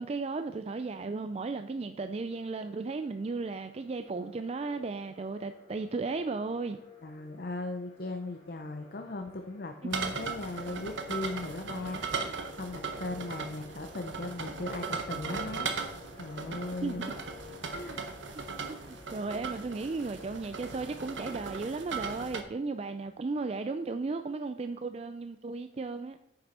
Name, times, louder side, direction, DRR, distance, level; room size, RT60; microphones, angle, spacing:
voice 1, 0.0-6.8 9.8-10.0 16.8-17.0 18.7-26.2, right 3 dB, 35° right, 8 dB, 0.3 m, -35 dB
sound 1, 2.0-22.0, left 3 dB, 35° left, 2.2 m, -53 dB
voice 2, 7.0-15.7 16.1-17.2 17.7-18.1, left 2 dB, 55° left, 5 dB, 0.6 m, -38 dB
sound 2, 9.9-22.4, right 5 dB, 85° right, 1.1 m, -38 dB
9.4 x 6.7 x 4.2 m, 0.80 s
head